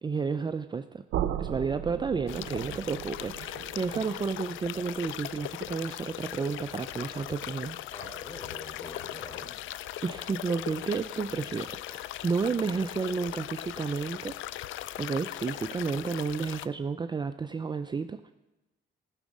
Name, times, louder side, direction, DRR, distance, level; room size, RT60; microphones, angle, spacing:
voice 1, 0.0-1.0 1.4-7.8 10.0-14.4 15.0-18.3, right 5 dB, 20° right, 9 dB, 0.4 m, -31 dB
sound 1, 1.1-7.0, right 11 dB, 85° right, 0.7 m, -38 dB
sound 2, 2.3-16.7, left 14 dB, 80° left, 0.4 m, -39 dB
voice 2, 7.9-9.5, left 1 dB, 25° left, 3 dB, 3.4 m, -45 dB
15.5 x 6.3 x 7.3 m, 1.0 s
cardioid pair, 90°, 20 cm